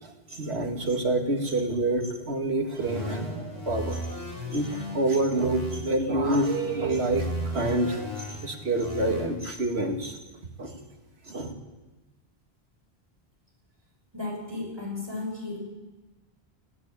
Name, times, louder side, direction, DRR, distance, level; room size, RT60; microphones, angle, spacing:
voice 1, 0.0-4.0 4.5-10.2 10.6-10.8 11.3-11.5, right 2 dB, 85° right, 4 dB, 2.3 m, -27 dB
sound 1, 2.8-5.8 6.2-9.2, equal, 70° left, 5.8 m, -36 dB
voice 2, 14.1-15.6, left 3 dB, 25° right, 0 dB, 6.3 m, -34 dB
20.5 x 15.5 x 8.8 m, 1.1 s
omnidirectional pair, 1.1 m